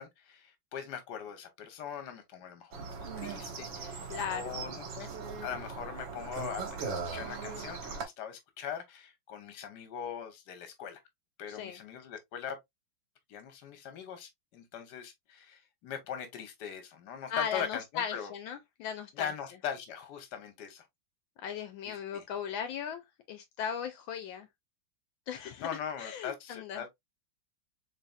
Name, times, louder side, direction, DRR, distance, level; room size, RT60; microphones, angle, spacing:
voice 1, 0.0-2.9 3.2-5.1 5.4-11.0 11.4-12.6 13.3-18.3 19.1-20.8 21.9-22.2 25.6-26.9, left 8 dB, 60° left, 1.5 m, -41 dB
sound 1, 2.7-8.0, right 5 dB, 70° right, 2.0 m, -39 dB
voice 2, 4.1-4.6 11.5-11.8 17.3-19.3 21.4-23.0 23.3-24.5 25.3-25.7 26.0-26.8, left 8 dB, 80° left, 1.4 m, -37 dB
4.1 x 3.8 x 2.3 m
omnidirectional pair, 2.2 m